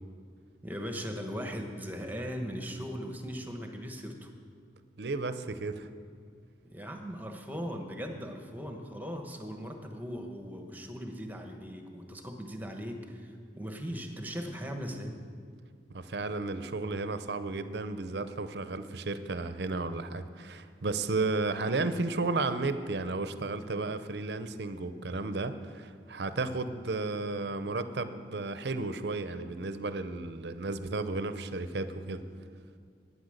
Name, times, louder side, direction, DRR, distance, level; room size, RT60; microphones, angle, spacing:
voice 1, 0.6-4.3 6.7-15.2, equal, 10° right, 4 dB, 1.1 m, -39 dB
voice 2, 5.0-5.9 15.9-32.2, right 3 dB, 70° right, 11 dB, 0.7 m, -33 dB
12.0 x 9.4 x 6.5 m, 2.3 s
head